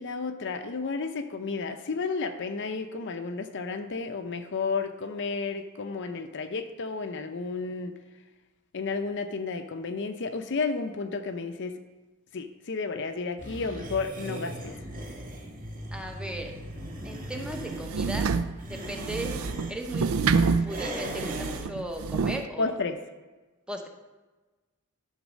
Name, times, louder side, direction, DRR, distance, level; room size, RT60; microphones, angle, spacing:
voice 1, 0.0-7.9 8.7-11.7 12.3-14.8 22.6-23.0, left 4 dB, 55° left, 8 dB, 0.6 m, -32 dB
sound 1, 13.4-17.8 18.5-19.8 20.7-21.7, right 1 dB, 40° right, 1.7 m, -38 dB
voice 2, 15.9-16.5 17.0-18.3 18.6-19.3 19.7-20.3 20.6-22.7 23.7-23.9, right 1 dB, 5° right, 3 dB, 0.7 m, -37 dB
sound 2, 17.4-22.4, right 5 dB, 70° right, 0.4 m, -28 dB
11.5 x 4.1 x 6.3 m, 1.2 s
head